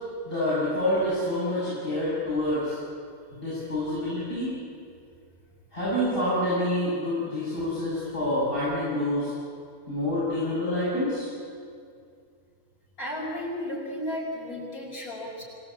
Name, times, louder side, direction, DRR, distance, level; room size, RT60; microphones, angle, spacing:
voice 1, 0.2-2.8 3.3-4.6 5.7-9.3 9.9-11.3, left 1 dB, 40° left, -11 dB, 8.0 m, -27 dB
voice 2, 13.0-15.4, left 1 dB, 80° left, -3 dB, 6.9 m, -34 dB
26.0 x 18.5 x 8.7 m, 2.3 s
omnidirectional pair, 1.5 m